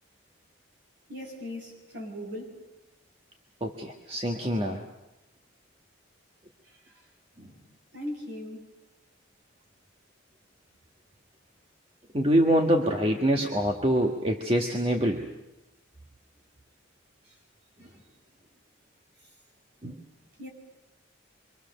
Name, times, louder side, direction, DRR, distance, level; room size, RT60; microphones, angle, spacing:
voice 1, 1.1-2.6 6.6-7.1 7.9-8.7 17.2-17.3 17.8-17.9 19.2-19.3 20.4-20.5, left 1 dB, 55° right, 0 dB, 7.1 m, -39 dB
voice 2, 3.6-4.8 7.4-7.5 12.1-15.3 19.8-20.0, equal, 30° right, 1 dB, 1.5 m, -25 dB
26.0 x 24.5 x 6.8 m, 0.97 s
head